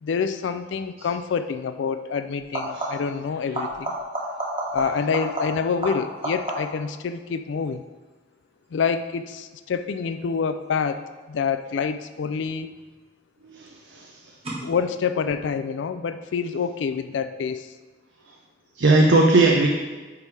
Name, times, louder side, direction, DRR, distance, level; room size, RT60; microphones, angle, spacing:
voice 1, 0.0-4.0 4.7-7.8 8.7-11.0 11.3-12.7 14.6-17.7, left 6 dB, 85° left, 10 dB, 0.4 m, -27 dB
sound 1, 1.0-1.2 2.4-3.2 3.5-6.9 12.3-12.9 14.4-14.5, right 1 dB, 30° right, 1.4 m, -31 dB
voice 2, 13.5-14.1 18.8-19.7, right 2 dB, 80° right, 1 dB, 0.7 m, -18 dB
9.5 x 3.4 x 4.7 m, 1.3 s
head